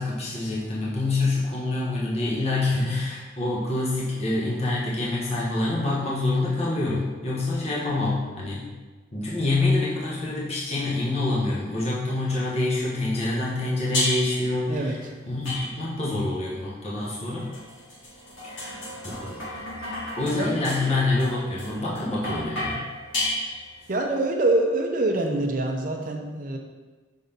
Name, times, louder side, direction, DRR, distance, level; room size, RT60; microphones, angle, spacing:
voice 1, 0.0-8.7 9.1-17.5 18.4-18.8 19.1-19.4 20.2-22.9, left 2 dB, 35° left, -6 dB, 1.2 m, -26 dB
sound 1, 13.9-14.5 15.4-16.1 17.1-23.9, left 1 dB, 85° left, 2.0 m, -32 dB
voice 2, 20.2-20.7 23.9-26.6, right 2 dB, 45° right, 2 dB, 0.6 m, -25 dB
5.7 x 4.0 x 5.2 m, 1.3 s
head